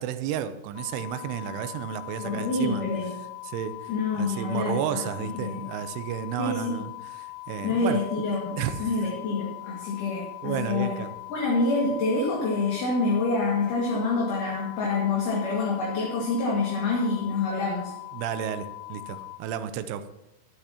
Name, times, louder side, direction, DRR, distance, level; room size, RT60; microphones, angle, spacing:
voice 1, 0.0-2.9 3.4-8.0 8.3-8.9 10.4-11.1 18.1-20.0, right 9 dB, 80° right, 10 dB, 2.6 m, -32 dB
sound 1, 0.8-19.4, left 24 dB, 80° left, 3.5 m, -41 dB
voice 2, 2.2-3.1 3.9-5.6 6.4-6.7 7.6-11.0 11.3-17.9, left 3 dB, 55° left, -4 dB, 3.2 m, -27 dB
22.5 x 8.5 x 2.9 m, 0.91 s
omnidirectional pair, 5.1 m